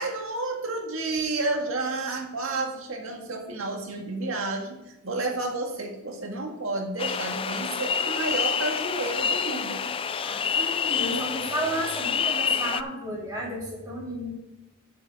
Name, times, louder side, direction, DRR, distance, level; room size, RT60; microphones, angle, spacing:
voice 1, 0.0-9.8, right 2 dB, 75° right, 1 dB, 1.9 m, -31 dB
sound 1, 7.0-12.8, left 6 dB, 25° left, 0.3 m, -28 dB
voice 2, 10.2-14.3, right 1 dB, 10° right, -12 dB, 3.4 m, -32 dB
7.2 x 6.6 x 5.9 m, 0.98 s
head